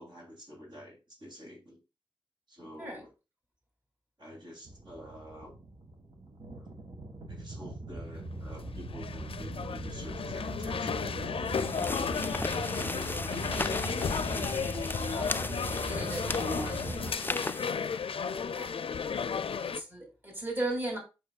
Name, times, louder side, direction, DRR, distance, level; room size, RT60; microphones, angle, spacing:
voice 1, 0.0-1.8 2.5-3.1 4.2-5.5 6.6-6.7 7.3-12.3 12.8-14.3 15.2-16.5 17.1-17.3 18.2-18.6, equal, 60° right, 3.2 m, -49 dB
sound 1, 4.6-17.1, right 2 dB, 80° right, 1.8 m, -40 dB
sound 2, 8.2-19.8, left 6 dB, 85° left, 0.4 m, -34 dB
sound 3, 11.4-17.7, left 2 dB, 25° left, 0.3 m, -37 dB
voice 2, 15.1-17.2 18.5-18.7 19.6-21.0, right 1 dB, 20° right, 2.9 m, -37 dB
7.8 x 6.3 x 2.4 m
wide cardioid pair, 75°, 9 cm